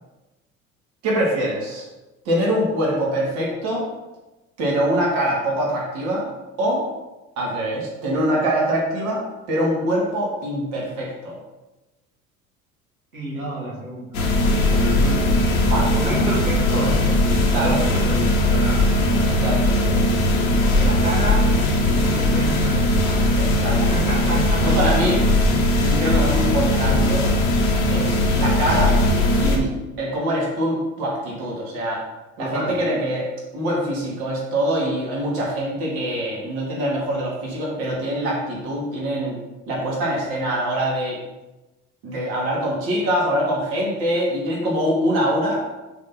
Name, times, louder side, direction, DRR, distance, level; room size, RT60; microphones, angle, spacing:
voice 1, 1.0-1.8 2.2-3.9 4.6-6.3 6.6-6.9 7.4-11.4 15.7-16.2 17.5-17.8 19.3-19.8 23.3-23.8 24.6-25.2 25.8-27.3 27.9-29.0 29.4-32.0 32.4-39.4 39.7-41.2 42.0-45.6, right 1 dB, 60° right, -3 dB, 2.5 m, -24 dB
voice 2, 13.1-14.0 14.8-15.3 16.0-17.0 17.6-18.9 20.7-21.5 21.9-23.3 23.8-24.8 32.4-32.8, right 1 dB, 85° right, -4 dB, 1.9 m, -29 dB
sound 1, 14.1-29.6, left 1 dB, 80° left, 1.2 m, -19 dB
6.1 x 4.3 x 5.9 m, 1.1 s
figure-of-eight pair, 60°, 42 cm